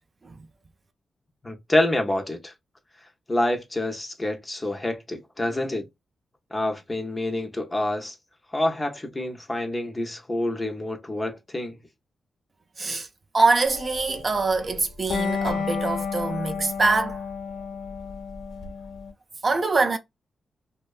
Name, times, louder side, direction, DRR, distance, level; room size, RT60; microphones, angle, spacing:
voice 1, 1.4-2.5 3.3-5.9 6.5-8.2 8.5-11.8, left 1 dB, 20° left, 0.6 m, -27 dB
voice 2, 12.8-13.1 13.3-17.2 19.4-20.0, right 3 dB, 40° right, 0.4 m, -24 dB
sound 1, 13.6-19.1, left 5 dB, 80° left, 0.6 m, -32 dB
2.6 x 2.2 x 2.3 m
cardioid pair, 90°, 0 cm